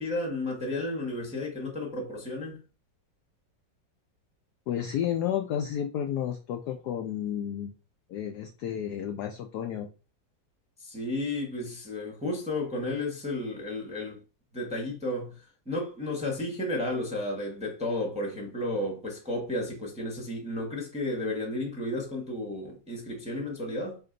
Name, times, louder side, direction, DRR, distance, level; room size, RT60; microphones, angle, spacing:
voice 1, 0.0-2.6 10.8-14.2 14.5-15.4 15.7-24.0, left 1 dB, 5° right, 0.9 m, -32 dB
voice 2, 4.7-7.7 8.1-9.9, left 9 dB, 75° left, 0.9 m, -31 dB
5.1 x 2.6 x 3.8 m
omnidirectional pair, 2.2 m